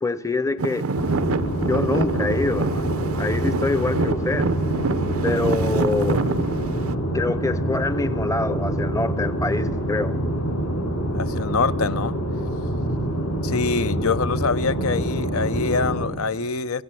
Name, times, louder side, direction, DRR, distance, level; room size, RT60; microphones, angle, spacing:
voice 1, 0.0-0.9 1.6-4.5 5.2-6.3 7.1-10.1, left 3 dB, 15° left, 0.7 m, -25 dB
Traffic noise roadway noise / Engine, 0.6-7.0, right 4 dB, 75° right, 0.7 m, -26 dB
sound 1, 0.9-16.0, right 1 dB, 90° left, 6.0 m, -26 dB
voice 2, 11.1-12.1 13.4-16.8, left 4 dB, 70° left, 0.7 m, -25 dB
29.5 x 16.5 x 7.6 m
head